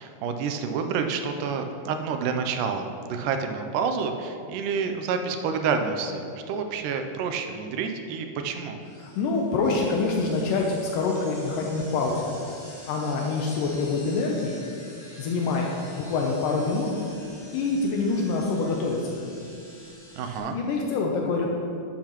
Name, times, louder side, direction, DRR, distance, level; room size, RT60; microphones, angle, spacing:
voice 1, 0.0-8.8 20.2-20.6, right 5 dB, 80° right, 6 dB, 2.2 m, -28 dB
sound 1, 8.8-20.4, left 1 dB, 40° left, 2.2 m, -48 dB
voice 2, 9.0-12.4 12.9-14.6 15.2-15.7 16.0-16.9 17.5-19.4 20.4-21.5, left 3 dB, 80° left, 0 dB, 2.4 m, -26 dB
11.5 x 8.7 x 3.0 m, 2.5 s
omnidirectional pair, 3.8 m